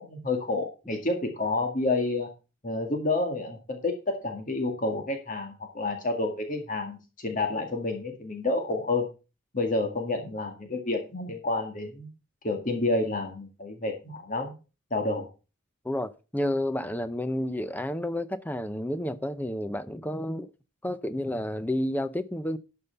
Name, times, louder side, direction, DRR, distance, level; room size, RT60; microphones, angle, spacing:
voice 1, 0.0-2.3 2.6-3.9 4.2-9.1 9.5-12.1 12.4-14.5 14.9-15.3, left 2 dB, 40° left, 1.8 m, -29 dB
voice 2, 15.8-20.5 20.8-22.6, left 1 dB, 10° left, 0.6 m, -30 dB
12.0 x 5.6 x 5.7 m
head